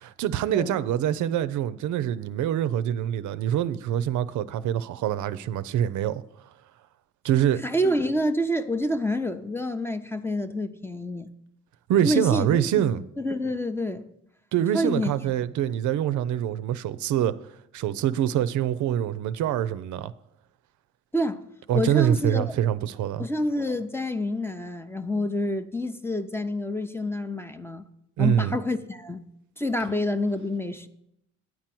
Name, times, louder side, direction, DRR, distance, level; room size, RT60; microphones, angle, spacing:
voice 1, 0.0-6.2 7.2-7.6 11.9-13.0 14.5-17.4 17.7-20.1 21.7-23.3 28.2-28.6, right 10 dB, 75° right, 0.5 m, -25 dB
voice 2, 7.6-11.3 12.0-12.6 13.2-14.0 14.7-15.1 21.1-21.4 21.7-22.4 23.2-27.8 28.2-29.3 29.6-30.9, left 1 dB, 10° left, 0.6 m, -27 dB
9.6 x 4.4 x 7.6 m
cardioid pair, 90°, 30 cm